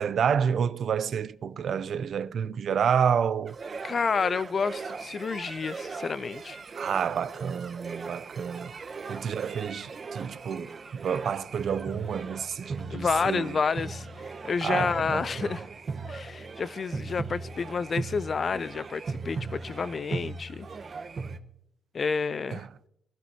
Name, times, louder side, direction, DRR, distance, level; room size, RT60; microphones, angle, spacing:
voice 1, 0.0-3.6 6.8-8.7 9.1-13.6 14.6-15.5 22.5-22.7, right 7 dB, 60° right, 0.5 m, -29 dB
sound 1, 3.5-21.4, right 4 dB, 45° right, 1.1 m, -38 dB
voice 2, 3.8-6.6 12.9-15.6 16.1-20.7 21.9-22.7, left 5 dB, 40° left, 0.4 m, -29 dB
23.0 x 13.5 x 2.8 m
cardioid pair, 90°, 0 cm